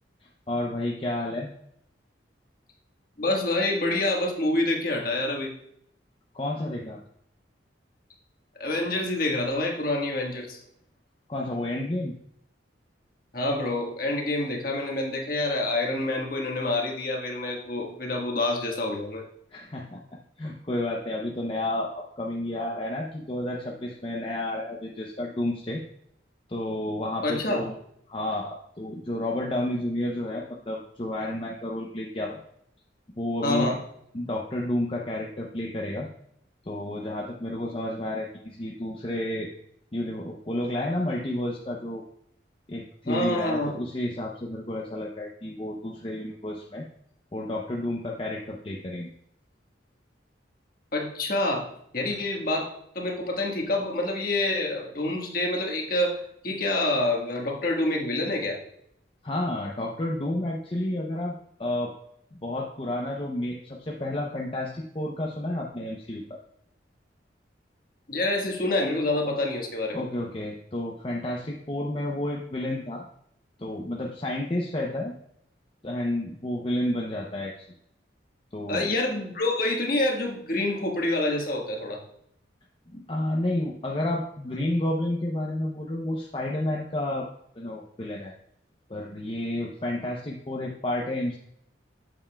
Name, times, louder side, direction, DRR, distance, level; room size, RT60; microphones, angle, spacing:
voice 1, 0.5-1.5 6.3-7.0 11.3-12.1 19.5-20.0 20.4-25.8 26.5-27.7 28.1-32.4 33.2-33.7 34.1-36.1 36.6-39.5 39.9-42.0 42.7-46.8 47.3-49.1 59.2-61.3 61.6-61.9 62.3-66.4 69.9-73.0 73.6-75.1 75.8-77.5 78.5-78.9 82.9-87.3 87.6-88.3 88.9-91.4, left 1 dB, 30° left, -1 dB, 0.6 m, -31 dB
voice 2, 3.2-5.5 8.6-10.6 13.3-19.2 27.2-27.7 33.4-33.8 43.1-43.8 50.9-51.6 51.9-52.7 52.9-58.6 68.1-70.0 78.7-82.0, left 2 dB, 50° left, 0 dB, 1.5 m, -27 dB
8.7 x 7.1 x 2.3 m, 0.72 s
head